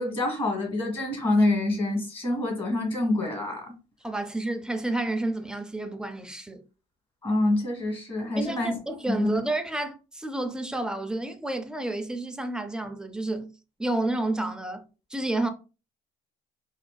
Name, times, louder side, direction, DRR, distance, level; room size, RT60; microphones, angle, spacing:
voice 1, 0.0-3.6 7.2-8.8 9.1-9.4, left 2 dB, 35° left, 1.7 m, -26 dB
voice 2, 4.0-6.6 8.4-13.5 13.8-15.5, right 2 dB, 5° right, 0.4 m, -30 dB
4.3 x 2.3 x 2.2 m
cardioid pair, 110°, 17 cm